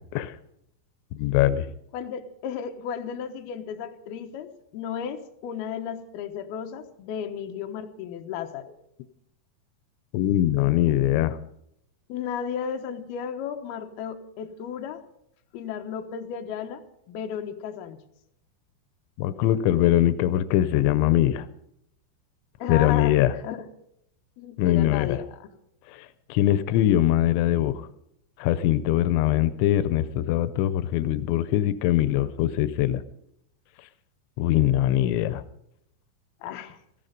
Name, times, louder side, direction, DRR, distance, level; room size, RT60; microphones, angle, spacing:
voice 1, 1.1-1.7 10.1-11.4 19.2-21.5 22.7-23.3 24.6-25.2 25.9-27.9 28.4-33.0 34.4-35.4, left 13 dB, 90° left, 14 dB, 3.1 m, -22 dB
voice 2, 1.9-8.7 12.1-15.0 15.5-18.0 22.6-23.2 23.4-23.6 24.4-25.5 36.4-36.8, left 8 dB, 70° left, 5 dB, 2.8 m, -34 dB
17.5 x 15.0 x 5.2 m, 0.76 s
omnidirectional pair, 5.2 m